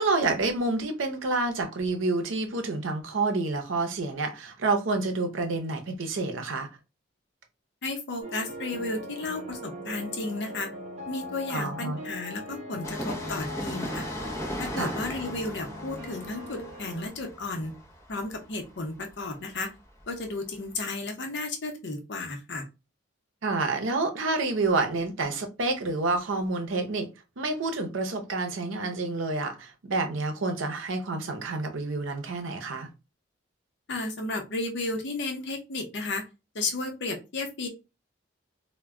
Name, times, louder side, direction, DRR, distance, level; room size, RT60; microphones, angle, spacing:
voice 1, 0.0-6.7 11.5-12.0 14.8-14.9 23.4-27.1 27.4-32.9, right 3 dB, 85° right, 0.6 m, -28 dB
voice 2, 7.8-10.7 11.1-14.1 14.6-17.7 18.1-19.7 20.1-22.7 33.9-36.2 36.5-37.7, left 2 dB, 60° left, 0.7 m, -33 dB
sound 1, 8.2-17.1, left 1 dB, 35° right, 0.7 m, -40 dB
Train, 12.8-20.3 20.5-20.6, equal, 15° left, 0.6 m, -38 dB
2.1 x 2.1 x 3.6 m
head